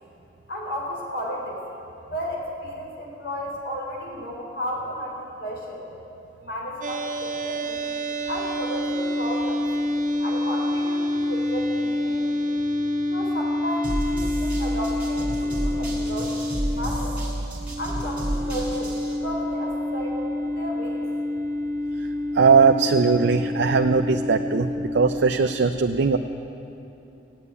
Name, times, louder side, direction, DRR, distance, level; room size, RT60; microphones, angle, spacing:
voice 1, 0.5-1.6 2.1-5.9 6.4-7.8 8.2-9.6 10.2-12.5 13.1-17.2 17.8-21.0, equal, 75° left, -2 dB, 4.0 m, -33 dB
sound 1, 6.8-25.2, left 1 dB, 45° right, 1.2 m, -28 dB
sound 2, 13.8-19.2, right 1 dB, 5° right, 2.6 m, -30 dB
voice 2, 22.3-26.2, right 5 dB, 75° right, 5 dB, 0.5 m, -19 dB
16.0 x 8.2 x 9.8 m, 2.9 s
head